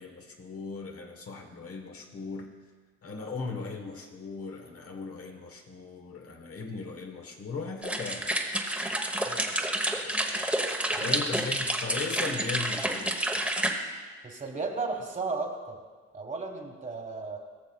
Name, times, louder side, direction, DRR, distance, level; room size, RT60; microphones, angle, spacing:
voice 1, 0.0-2.5 3.0-8.3 11.0-13.2, left 4 dB, 50° left, 2 dB, 1.3 m, -38 dB
sound 1, 7.8-13.7, right 1 dB, 5° right, 1.1 m, -29 dB
voice 2, 14.2-15.8 16.1-17.4, right 3 dB, 25° right, 2 dB, 1.6 m, -34 dB
19.0 x 6.9 x 2.4 m, 1.5 s
cardioid pair, 90°, 30 cm